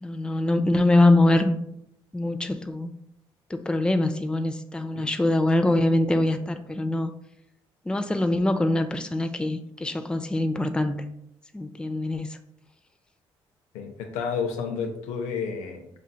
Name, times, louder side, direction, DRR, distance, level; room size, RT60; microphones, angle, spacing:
voice 1, 0.0-1.6 2.1-2.9 3.5-7.1 7.9-11.0 11.5-12.3, left 2 dB, 10° left, 7 dB, 0.4 m, -23 dB
voice 2, 13.7-15.9, left 6 dB, 85° left, 4 dB, 0.6 m, -31 dB
6.2 x 2.7 x 2.2 m, 0.76 s
supercardioid pair, 55°, 12 cm